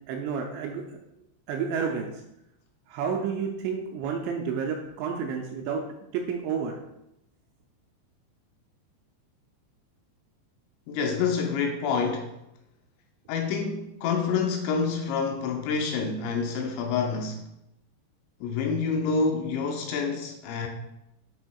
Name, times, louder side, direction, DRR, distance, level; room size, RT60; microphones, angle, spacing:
voice 1, 0.1-0.8 1.5-2.1 2.9-5.8 6.1-6.8, right 6 dB, 80° right, 2.6 m, -30 dB
voice 2, 10.9-12.4 13.3-17.4 18.4-20.7, left 5 dB, 80° left, 2.8 m, -27 dB
11.5 x 4.2 x 2.3 m
omnidirectional pair, 5.5 m